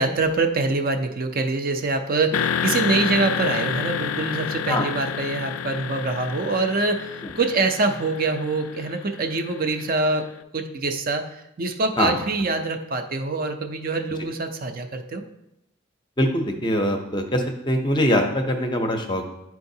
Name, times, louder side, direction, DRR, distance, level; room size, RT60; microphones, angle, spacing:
voice 1, 0.0-15.2, right 3 dB, 45° right, 6 dB, 0.5 m, -25 dB
sound 1, 2.3-10.1, left 8 dB, 85° left, 0.3 m, -29 dB
voice 2, 16.2-19.2, left 1 dB, 20° left, 4 dB, 0.6 m, -23 dB
9.4 x 4.6 x 2.7 m, 0.83 s
head